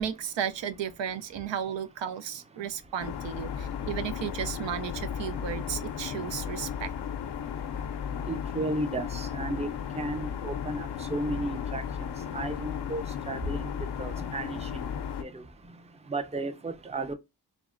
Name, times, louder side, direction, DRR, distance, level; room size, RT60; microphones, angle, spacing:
voice 1, 0.0-6.9, right 8 dB, 80° right, 0.5 m, -34 dB
sound 1, 3.0-15.2, left 8 dB, 70° left, 0.5 m, -35 dB
voice 2, 8.3-9.7 10.0-11.8 12.3-13.6 14.0-14.7 15.2-15.3 16.1-17.1, right 2 dB, 15° right, 0.5 m, -33 dB
3.4 x 2.0 x 2.4 m
cardioid pair, 60°, 43 cm